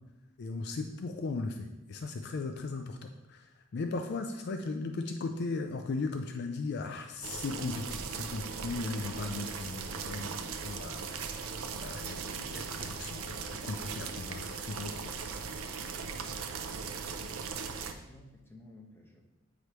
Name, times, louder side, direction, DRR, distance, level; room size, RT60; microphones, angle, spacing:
voice 1, 0.4-11.5 11.8-15.1, left 3 dB, 50° left, 5 dB, 0.4 m, -37 dB
sound 1, 7.2-17.9, right 5 dB, 80° right, 0.5 m, -39 dB
voice 2, 17.5-19.2, left 1 dB, 10° left, -1 dB, 0.9 m, -55 dB
8.0 x 4.9 x 3.1 m, 1.0 s
head